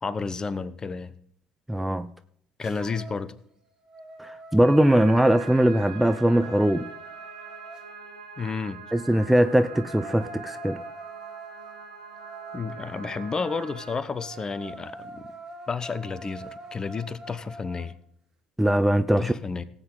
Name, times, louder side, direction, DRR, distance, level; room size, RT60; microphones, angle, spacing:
voice 1, 0.0-1.1 2.6-3.3 8.4-8.8 12.5-15.3 15.7-17.9 19.2-19.6, left 4 dB, 25° left, 0.9 m, -31 dB
voice 2, 1.7-2.1 4.2-6.9 8.9-10.8 18.6-19.3, right 1 dB, 5° right, 0.5 m, -21 dB
sound 1, 2.6-3.3 3.7-7.9 9.3-17.9, right 3 dB, 25° right, 2.6 m, -44 dB
sound 2, 4.6-14.0, right 5 dB, 85° right, 2.3 m, -43 dB
17.5 x 8.6 x 3.9 m
figure-of-eight pair, 55°, 3 cm